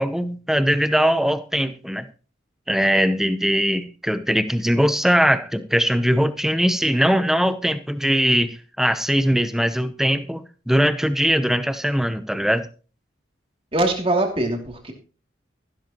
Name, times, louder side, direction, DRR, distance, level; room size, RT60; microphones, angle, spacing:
voice 1, 0.0-2.1 2.7-12.7, equal, ahead, 11 dB, 0.7 m, -21 dB
voice 2, 13.7-14.9, right 1 dB, 30° right, 3 dB, 2.7 m, -22 dB
14.5 x 12.5 x 3.0 m, 0.37 s
head